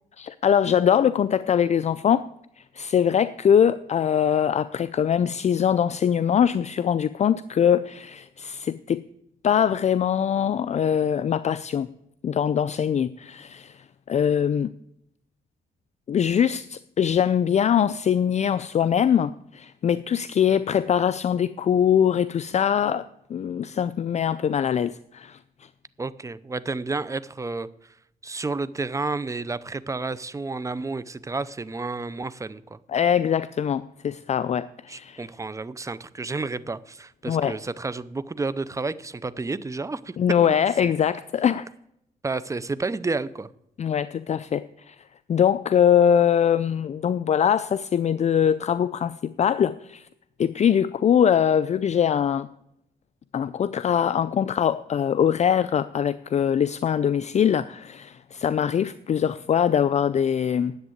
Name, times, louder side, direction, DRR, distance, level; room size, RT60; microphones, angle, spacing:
voice 1, 0.2-2.3 2.6-9.0 9.4-11.9 12.2-14.7 16.1-25.7 32.9-35.2 37.3-37.6 40.2-41.7 43.8-45.0 45.3-50.1 50.4-52.5 53.3-60.8, left 8 dB, 40° left, 0.4 m, -22 dB
voice 2, 26.0-27.9 28.2-32.8 34.9-40.6 40.8-40.9 42.2-43.5, right 3 dB, 20° right, 0.6 m, -31 dB
10.5 x 8.1 x 7.9 m
cardioid pair, 85°, 17 cm